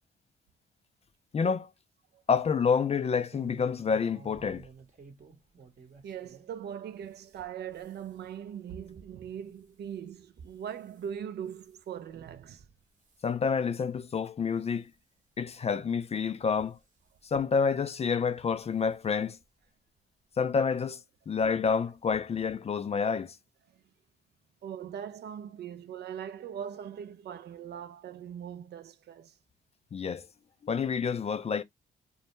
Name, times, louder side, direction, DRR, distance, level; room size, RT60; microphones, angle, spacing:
voice 1, 1.3-1.7 2.3-4.7 13.2-14.9 15.4-16.8 17.2-19.4 20.4-21.0 21.3-23.3 29.9-30.3 30.6-31.6, left 6 dB, 30° left, 0.4 m, -28 dB
sound 1, 3.2-6.5 7.0-11.1 11.5-11.8 12.4-12.7 13.0-13.3 13.9-14.0 14.4-14.5 15.6-15.7 16.5-17.3 18.4-18.6 19.0-19.1 19.4-19.5, right 4 dB, 40° right, 0.8 m, -54 dB
voice 2, 6.0-12.7 18.7-18.8 23.7-23.8 24.6-29.4, right 8 dB, 55° right, 0.4 m, -41 dB
2.1 x 2.0 x 3.0 m
supercardioid pair, 50°, 20 cm